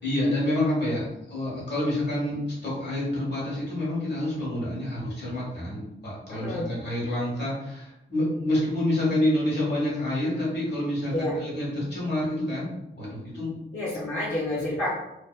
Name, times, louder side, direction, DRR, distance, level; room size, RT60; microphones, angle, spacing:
voice 1, 0.0-12.7 13.0-13.5, left 1 dB, 55° left, -6 dB, 1.3 m, -28 dB
voice 2, 6.3-6.7 11.1-11.4 13.7-14.9, left 1 dB, 90° left, -9 dB, 0.7 m, -29 dB
2.7 x 2.1 x 2.2 m, 0.88 s
cardioid pair, 60°, 21 cm